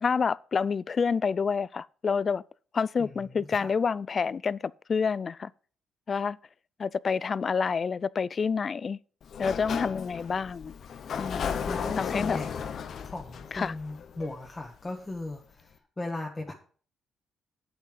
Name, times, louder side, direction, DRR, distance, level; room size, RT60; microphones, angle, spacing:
voice 1, 0.0-2.4 2.7-4.6 4.9-5.5 6.1-6.4 6.8-9.0 9.4-10.7 11.2-11.7 12.0-12.4 13.5-13.7, left 5 dB, 40° left, 0.3 m, -28 dB
voice 2, 3.0-3.7 11.6-12.7 13.0-16.5, left 2 dB, 20° left, 1.4 m, -37 dB
Sliding door, 9.2-14.9, left 7 dB, 60° left, 0.9 m, -35 dB
8.4 x 8.0 x 5.1 m
cardioid pair, 90°, 0 cm